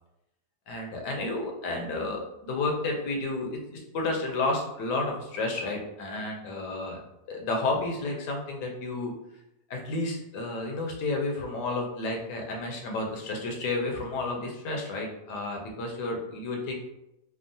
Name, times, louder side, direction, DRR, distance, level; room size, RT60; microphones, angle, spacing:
voice 1, 0.7-3.6 3.9-7.0 7.3-9.1 9.7-16.7, left 2 dB, 80° left, 0 dB, 1.3 m, -31 dB
3.5 x 2.0 x 2.6 m, 0.86 s
omnidirectional pair, 1.8 m